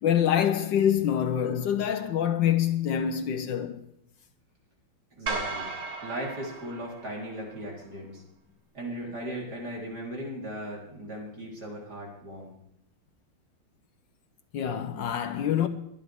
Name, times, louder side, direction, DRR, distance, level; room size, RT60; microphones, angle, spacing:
voice 1, 0.0-3.8 14.5-15.7, left 9 dB, 65° left, 1.4 m, -25 dB
voice 2, 5.1-5.7 6.0-8.2 8.7-12.5, right 1 dB, 50° right, 4.4 m, -37 dB
sound 1, 5.3-7.6, right 4 dB, 85° right, 2.6 m, -36 dB
22.5 x 11.0 x 3.6 m
omnidirectional pair, 2.3 m